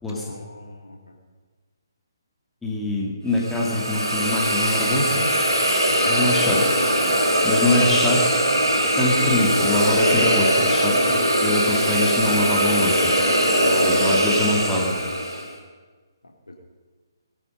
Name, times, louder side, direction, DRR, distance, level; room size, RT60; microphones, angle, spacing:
voice 1, 0.1-1.0 5.9-6.2 8.7-8.8 13.5-14.1, left 1 dB, 75° left, 2 dB, 3.1 m, -34 dB
voice 2, 2.6-5.3 6.0-6.8 7.4-8.4 9.0-13.1 13.9-15.0, left 1 dB, 5° left, -3 dB, 2.3 m, -24 dB
Hiss, 3.4-15.5, equal, 80° right, 4.2 m, -21 dB
18.5 x 13.0 x 5.3 m, 1.4 s
figure-of-eight pair, 135°, 2 cm